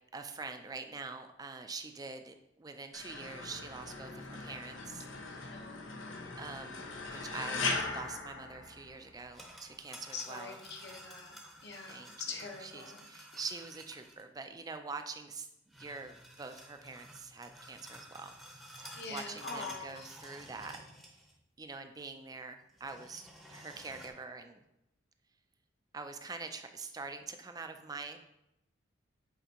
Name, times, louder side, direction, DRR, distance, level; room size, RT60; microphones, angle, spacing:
voice 1, 0.1-5.6 6.4-7.6 7.9-10.6 10.9-11.0 11.9-15.5 15.8-20.8 21.6-24.6 25.9-28.2, right 4 dB, 20° right, 6 dB, 0.4 m, -45 dB
sound 1, 2.9-9.2, left 3 dB, 85° left, 0.8 m, -39 dB
voice 2, 5.5-5.9 10.1-13.0 19.0-20.1, left 4 dB, 60° left, 2 dB, 1.0 m, -44 dB
sound 2, 9.1-14.2 15.7-21.4 21.7-21.8 22.7-24.1, equal, ahead, 0.8 m, -52 dB
8.0 x 4.5 x 2.9 m, 0.84 s
head